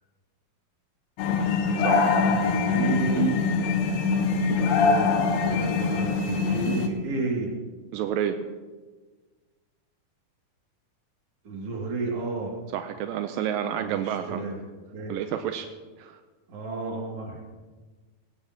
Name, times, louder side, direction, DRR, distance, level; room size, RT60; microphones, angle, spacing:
sound 1, 1.2-6.9, left 4 dB, 80° left, 2.8 m, -23 dB
voice 1, 1.8-2.2 7.9-8.4 12.7-14.5 15.1-15.7 16.0-16.2, right 10 dB, 85° right, 7 dB, 2.3 m, -29 dB
voice 2, 2.4-3.4 4.5-7.5 11.4-12.5 13.8-14.6 14.9-15.2 16.5-17.4, right 4 dB, 45° right, -1 dB, 3.2 m, -32 dB
18.5 x 17.5 x 2.9 m, 1.3 s
omnidirectional pair, 4.1 m